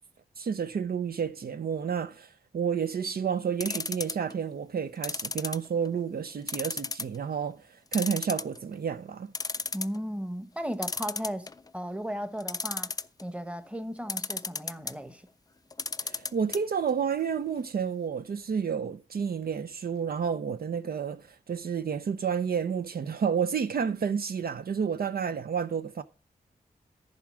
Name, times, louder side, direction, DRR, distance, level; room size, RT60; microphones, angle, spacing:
voice 1, 0.4-7.6 7.9-9.3 16.0-26.0, right 7 dB, 65° right, 0.6 m, -30 dB
sound 1, 3.6-4.3 5.0-6.0 6.5-7.2 7.5-7.6 7.9-8.7 9.1-9.2 9.3-10.0 10.8-11.7 12.4-13.2 14.1-14.9 15.7-16.6 16.9-17.0 17.2-17.3, left 4 dB, 25° left, 0.4 m, -33 dB
voice 2, 9.7-12.9 13.2-15.3, equal, 5° right, 1.0 m, -36 dB
10.5 x 4.9 x 6.2 m
wide cardioid pair, 85°, 17 cm